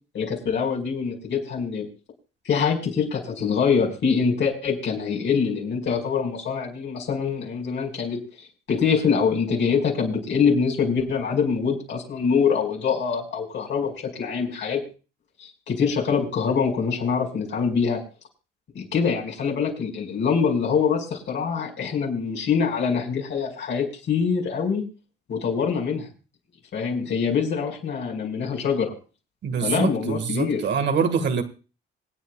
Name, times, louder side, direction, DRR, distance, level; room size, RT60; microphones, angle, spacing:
voice 1, 0.1-1.9 2.4-8.2 8.7-14.8 15.7-18.0 18.7-24.8 25.3-26.1 26.7-28.9 29.6-30.6, left 6 dB, 70° left, 5.8 m, -24 dB
voice 2, 29.4-31.4, right 6 dB, 60° right, 2.0 m, -24 dB
26.0 x 9.3 x 2.5 m
cardioid pair, 90°, 20 cm